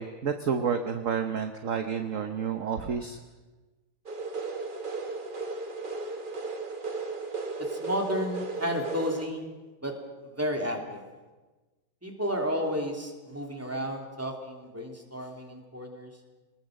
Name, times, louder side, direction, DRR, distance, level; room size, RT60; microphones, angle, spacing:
voice 1, 0.0-3.2, right 6 dB, 50° right, 7 dB, 1.2 m, -30 dB
sound 1, 4.1-9.3, right 3 dB, 30° right, 1.3 m, -35 dB
voice 2, 7.6-9.5 9.8-10.0 10.2-11.0 12.0-16.1, equal, 5° right, 2 dB, 2.9 m, -32 dB
24.5 x 20.0 x 6.5 m, 1.2 s
omnidirectional pair, 2.2 m